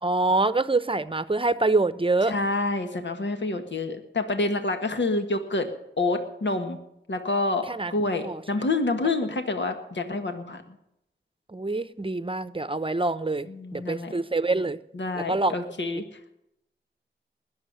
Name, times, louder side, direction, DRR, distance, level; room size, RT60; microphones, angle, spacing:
voice 1, 0.0-2.3 7.7-7.9 8.2-8.4 11.5-13.5 13.7-14.8 15.2-15.5, right 3 dB, 25° right, 14 dB, 0.8 m, -25 dB
voice 2, 2.3-5.7 6.0-6.8 7.1-10.6 13.5-14.1 14.9-16.0, left 2 dB, 70° left, 6 dB, 1.7 m, -27 dB
20.5 x 7.3 x 9.4 m, 0.81 s
cardioid pair, 55°, 20 cm